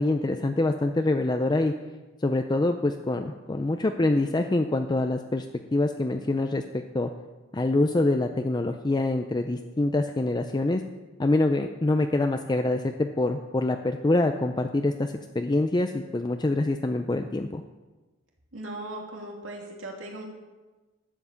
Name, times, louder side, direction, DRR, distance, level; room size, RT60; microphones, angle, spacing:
voice 1, 0.0-1.7 2.2-5.5 5.7-6.6 6.9-7.1 7.5-10.8 11.2-17.6, left 2 dB, 20° left, 6 dB, 0.5 m, -25 dB
voice 2, 18.5-20.3, right 1 dB, 85° right, -1 dB, 2.8 m, -38 dB
12.0 x 7.8 x 7.0 m, 1.2 s
head